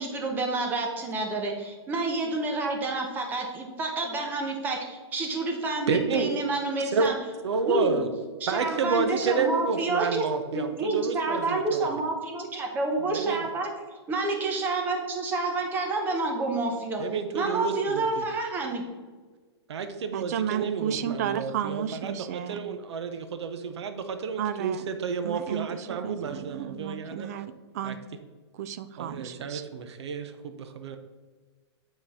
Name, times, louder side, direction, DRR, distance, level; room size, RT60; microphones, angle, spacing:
voice 1, 0.0-7.1 7.7-8.0 8.4-10.3 10.5-13.7 14.1-17.0 17.3-18.8, right 3 dB, 15° right, 2 dB, 0.9 m, -29 dB
voice 2, 5.9-6.3 6.9-7.1 7.4-8.1 8.5-11.9 13.1-13.4 17.0-18.2 19.7-27.3 27.8-28.0 29.0-31.0, right 5 dB, 75° right, 8 dB, 0.7 m, -30 dB
voice 3, 20.1-22.6 24.4-24.8 25.2-28.0 28.6-29.6, right 9 dB, 35° right, 13 dB, 0.4 m, -33 dB
8.9 x 4.0 x 4.1 m, 1.4 s
hypercardioid pair, 160°, 14 cm